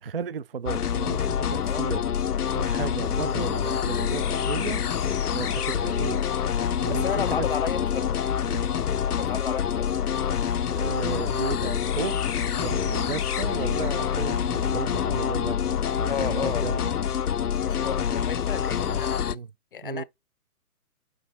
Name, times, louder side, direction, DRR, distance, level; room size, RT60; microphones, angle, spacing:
voice 1, 0.0-2.1 2.5-4.8 5.3-6.2 6.8-7.5 8.5-8.7 10.7-12.3 12.6-15.6 16.0-16.8 18.9-19.0 19.3-19.5 19.8-20.0, right 6 dB, 40° right, 0.4 m, -34 dB
sound 1, 0.7-19.4, left 8 dB, 80° left, 0.7 m, -26 dB
voice 2, 6.9-8.2 9.2-9.9 16.1-16.9 17.6-19.2 19.7-20.0, left 7 dB, 35° left, 0.6 m, -33 dB
8.8 x 3.6 x 4.1 m
figure-of-eight pair, 135°, 45 cm